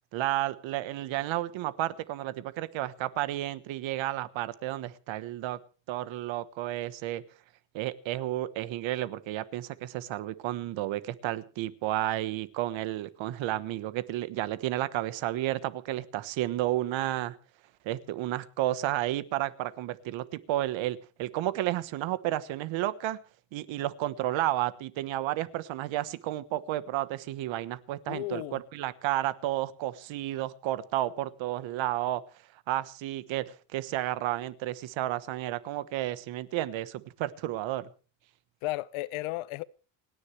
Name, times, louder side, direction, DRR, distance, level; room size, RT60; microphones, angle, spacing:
voice 1, 0.1-5.6 5.9-7.2 7.7-17.3 17.8-23.2 23.5-32.2 32.7-37.9, right 14 dB, 65° right, 1.4 m, -32 dB
voice 2, 28.1-28.6 38.6-39.6, left 18 dB, 75° left, 0.9 m, -34 dB
29.5 x 10.0 x 3.4 m
cardioid pair, 155°, 49 cm